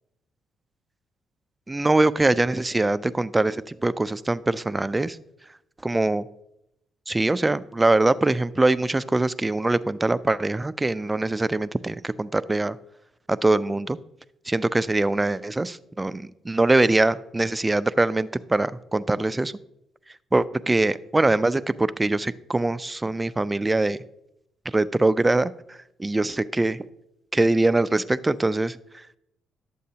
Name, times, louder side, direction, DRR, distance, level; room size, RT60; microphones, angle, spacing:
voice 1, 1.7-5.2 5.8-6.3 7.1-12.8 13.3-14.0 14.5-19.5 20.3-24.0 24.7-26.9 27.3-28.8, right 2 dB, 15° right, 15 dB, 0.3 m, -23 dB
11.5 x 7.6 x 2.8 m, 0.82 s
cardioid pair, 90°, 0 cm